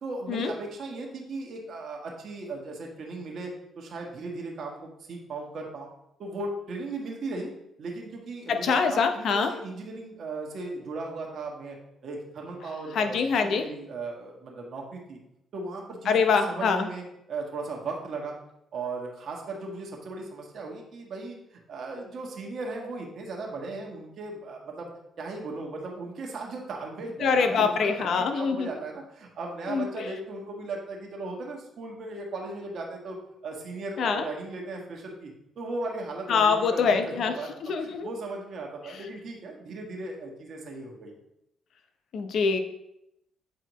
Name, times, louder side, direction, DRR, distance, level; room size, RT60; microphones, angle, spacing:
voice 1, 0.0-5.9 6.2-7.5 7.8-11.8 12.0-15.2 15.5-18.3 18.7-21.4 21.7-24.9 25.2-33.2 33.4-41.1, right 3 dB, 60° right, 0 dB, 1.4 m, -37 dB
voice 2, 8.5-9.5 12.9-13.7 16.1-16.9 27.2-28.7 29.7-30.1 34.0-34.2 36.3-37.3 37.6-38.1 42.1-42.6, left 5 dB, 65° left, 7 dB, 0.7 m, -24 dB
7.8 x 4.2 x 3.0 m, 0.83 s
cardioid pair, 90°, 0 cm